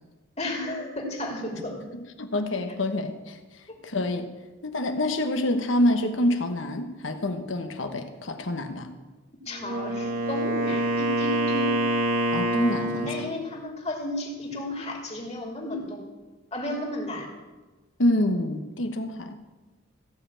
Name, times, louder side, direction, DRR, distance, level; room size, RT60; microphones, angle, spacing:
voice 1, 0.4-1.8 9.5-11.9 13.1-16.1 16.5-17.3, left 1 dB, 35° left, 1 dB, 2.6 m, -33 dB
voice 2, 2.2-3.4 3.8-4.3 4.6-8.9 12.3-13.1 18.0-19.6, left 1 dB, 75° left, 7 dB, 1.2 m, -26 dB
Wind instrument woodwind instrument, 9.5-13.4, right 1 dB, 45° right, 1.6 m, -26 dB
15.5 x 5.6 x 8.6 m, 1.2 s
head